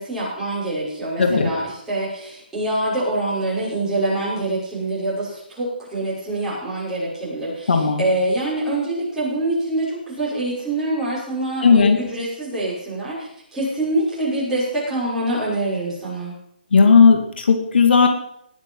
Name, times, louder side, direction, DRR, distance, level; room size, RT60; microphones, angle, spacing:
voice 1, 0.0-16.3, right 1 dB, 10° right, -8 dB, 6.0 m, -25 dB
voice 2, 1.2-1.5 7.7-8.0 11.6-12.0 16.7-18.1, left 5 dB, 75° left, 4 dB, 2.4 m, -14 dB
19.5 x 7.6 x 5.6 m, 0.73 s
hypercardioid pair, 160°, 6 cm